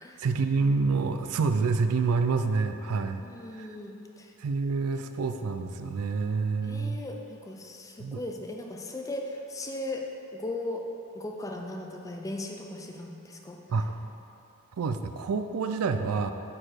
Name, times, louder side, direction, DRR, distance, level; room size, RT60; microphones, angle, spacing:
voice 1, 0.2-3.2 3.5-3.7 4.4-7.0 8.0-8.2 13.7-13.9 14.8-16.3, right 4 dB, 85° right, 8 dB, 0.4 m, -27 dB
voice 2, 3.2-4.3 6.6-10.1 10.3-10.8 11.1-13.6, left 1 dB, 15° left, 2 dB, 0.4 m, -37 dB
6.6 x 4.8 x 4.4 m, 2.8 s
head